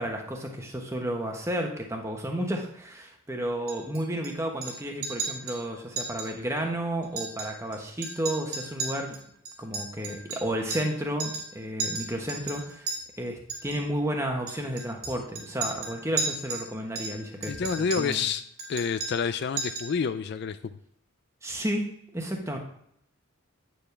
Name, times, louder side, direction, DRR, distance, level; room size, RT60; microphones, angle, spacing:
voice 1, 0.0-9.2 9.6-18.2 21.4-22.6, right 1 dB, 15° right, 2 dB, 1.2 m, -32 dB
Chink clink, 3.7-4.3 4.6-4.8 5.0-5.6 6.0-6.3 6.6-6.7 7.0-7.8 8.0-10.9 11.2-11.5 11.8-13.0 13.5-13.8 14.5-16.7 16.9-18.3 18.6-19.3 19.6-20.0, right 4 dB, 85° right, 2.7 m, -34 dB
voice 2, 17.5-18.4 18.7-20.6, left 6 dB, 50° left, 12 dB, 0.3 m, -28 dB
9.0 x 7.0 x 3.3 m, 0.71 s
head